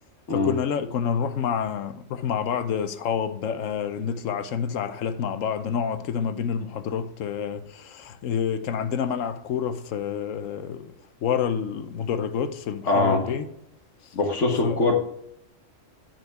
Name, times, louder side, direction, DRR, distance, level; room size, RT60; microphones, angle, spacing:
voice 1, 0.3-10.9 11.2-13.5 14.6-14.8, left 7 dB, 90° left, 1.1 m, -28 dB
voice 2, 12.9-13.2 14.1-14.9, left 2 dB, 70° left, 1.7 m, -22 dB
9.7 x 4.5 x 4.5 m
omnidirectional pair, 1.3 m